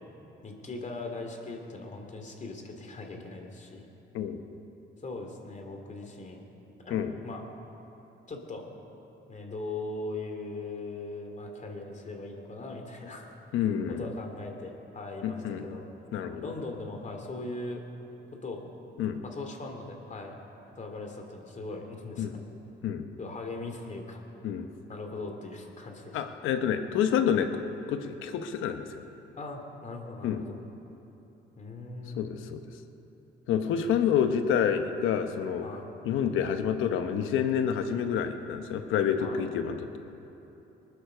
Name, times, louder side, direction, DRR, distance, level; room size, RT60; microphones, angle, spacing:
voice 1, 0.4-3.9 5.0-6.5 6.8-7.4 8.3-8.6 9.3-13.4 13.9-15.8 16.4-17.8 18.3-18.6 19.2-20.3 20.8-22.4 23.2-24.2 24.9-26.2 29.3-30.6 31.6-32.3 33.8-34.0 35.6-35.9 39.2-39.5, left 2 dB, 40° left, 3 dB, 2.5 m, -39 dB
voice 2, 13.5-14.1 15.2-15.8 16.1-16.5 19.0-19.2 22.2-22.3 22.8-23.0 24.4-24.7 26.1-27.6 27.9-29.0 30.2-30.4 32.1-32.6 33.5-35.6 36.0-40.0, left 8 dB, 90° left, 7 dB, 1.0 m, -28 dB
21.0 x 9.7 x 6.7 m, 3.0 s
cardioid pair, 90°, 20 cm